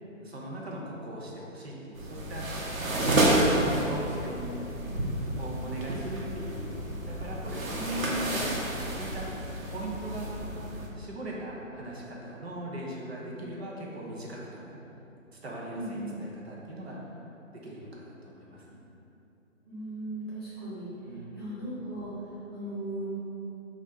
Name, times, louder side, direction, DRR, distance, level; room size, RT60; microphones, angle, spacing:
voice 1, 0.2-2.5 2.8-2.9 3.2-4.6 5.3-8.6 9.0-9.3 9.7-10.3 10.9-14.8 15.3-17.0 17.6-18.8 21.0-21.4, right 1 dB, 50° right, -3 dB, 0.7 m, -40 dB
sound 1, 1.9-10.9, right 1 dB, 90° right, 0.9 m, -30 dB
voice 2, 7.7-8.4 15.6-16.2 19.6-20.8 21.3-23.1, right 1 dB, 20° left, -11 dB, 0.7 m, -36 dB
3.9 x 2.4 x 4.0 m, 3.0 s
hypercardioid pair, 165°, 40 cm